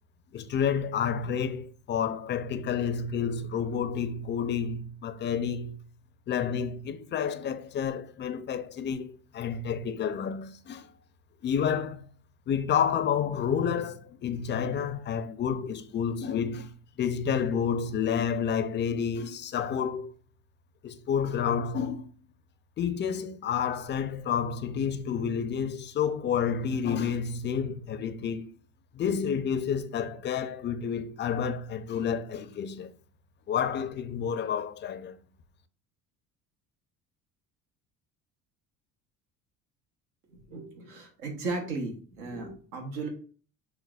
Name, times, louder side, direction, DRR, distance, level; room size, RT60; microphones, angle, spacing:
voice 1, 0.3-5.8 6.3-10.9 11.4-12.1 12.5-20.1 20.8-22.1 22.8-28.5 28.9-32.9 33.5-35.2, left 7 dB, 30° left, 0.4 m, -30 dB
voice 2, 40.3-43.1, right 3 dB, 90° right, 1.0 m, -36 dB
6.4 x 2.2 x 2.3 m
hypercardioid pair, 70°, 41 cm